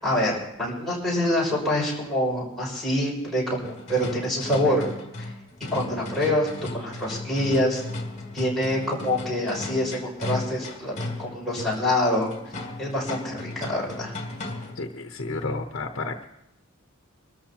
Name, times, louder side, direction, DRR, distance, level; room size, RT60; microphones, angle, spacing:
voice 1, 0.0-4.9 5.7-7.8 8.3-10.9 11.2-12.3 12.8-14.1, left 1 dB, ahead, -6 dB, 6.2 m, -25 dB
sound 1, 3.6-14.9, left 2 dB, 35° left, 2.4 m, -36 dB
voice 2, 14.7-16.2, left 3 dB, 60° left, 5 dB, 0.9 m, -31 dB
26.0 x 13.5 x 2.9 m, 0.86 s
head